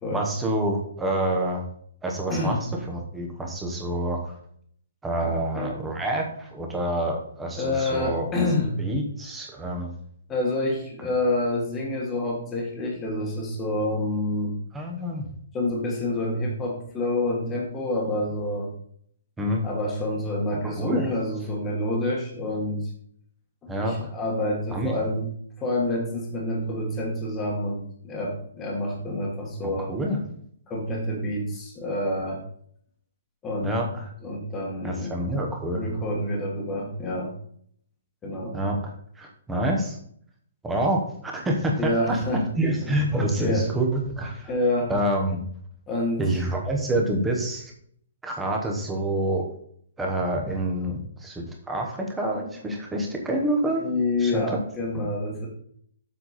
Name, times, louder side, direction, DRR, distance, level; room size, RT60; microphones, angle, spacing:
voice 1, 0.1-1.7 2.0-2.6 2.9-4.4 5.0-8.3 8.8-9.9 14.7-15.3 19.4-19.6 20.6-21.1 23.7-24.1 24.7-25.0 29.6-30.4 33.6-34.1 34.8-35.8 38.5-40.0 40.6-42.2 42.5-44.5 44.9-45.4 46.2-47.7 48.2-49.4 50.0-53.8 54.2-54.4, right 1 dB, 5° right, 0 dB, 1.0 m, -27 dB
voice 2, 2.3-2.8 5.2-5.8 7.6-8.8 10.3-14.6 15.5-18.7 19.6-22.9 23.6-25.2 25.6-29.9 30.7-32.4 33.4-33.7 34.2-35.1 35.7-37.3 38.2-38.6 41.8-42.4 42.9-43.0 43.4-43.7 44.5-44.9 45.9-46.2 53.8-55.5, left 1 dB, 10° left, -2 dB, 1.4 m, -27 dB
7.4 x 5.9 x 4.1 m, 0.63 s
hypercardioid pair, 175°, 0 cm